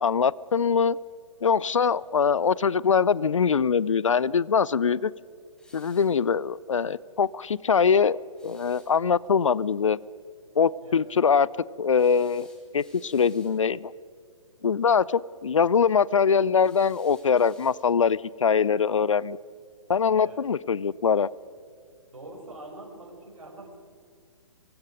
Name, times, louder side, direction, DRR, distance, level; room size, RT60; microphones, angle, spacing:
voice 1, 0.0-1.0 1.4-5.1 5.7-10.0 10.5-11.5 11.8-12.5 12.7-13.9 14.6-19.4 19.9-21.3, left 6 dB, 65° left, 23 dB, 0.6 m, -23 dB
sound 1, 5.6-6.2 8.4-8.9 11.9-13.6 16.6-18.0, left 2 dB, 5° left, 3.5 m, -57 dB
voice 2, 22.1-23.8, right 1 dB, 75° right, 1 dB, 6.8 m, -44 dB
24.5 x 22.0 x 5.2 m, 2.2 s
figure-of-eight pair, 125°, 17 cm